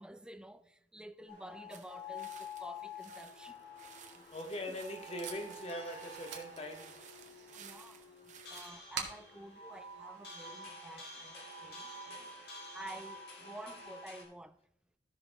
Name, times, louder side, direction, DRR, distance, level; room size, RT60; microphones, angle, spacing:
voice 1, 0.0-3.6 4.1-4.3 4.7-4.8 7.5-11.9 12.7-14.6, right 1 dB, 5° right, 0.4 m, -51 dB
sound 1, 1.3-14.2, left 2 dB, 65° left, 2.6 m, -49 dB
sound 2, 1.7-8.7, right 7 dB, 45° right, 0.9 m, -56 dB
Packing tape duct tape, 4.2-10.7, right 6 dB, 80° right, 1.6 m, -49 dB
voice 2, 4.3-7.0 11.7-12.8 13.4-13.6, left 1 dB, 35° left, 1.1 m, -43 dB
15.5 x 6.1 x 3.0 m
head